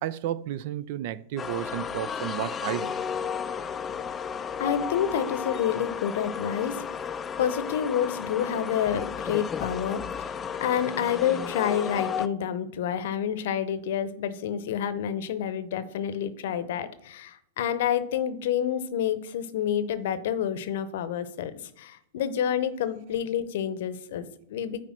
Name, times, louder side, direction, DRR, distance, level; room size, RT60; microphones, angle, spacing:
voice 1, 0.0-3.0, right 12 dB, 55° right, 0.4 m, -32 dB
sound 1, 1.4-12.3, left 7 dB, 20° left, 0.4 m, -33 dB
voice 2, 4.6-6.8 7.4-10.0 10.6-24.8, left 9 dB, 60° left, 0.8 m, -28 dB
9.5 x 3.3 x 6.0 m
hypercardioid pair, 105°, 0 cm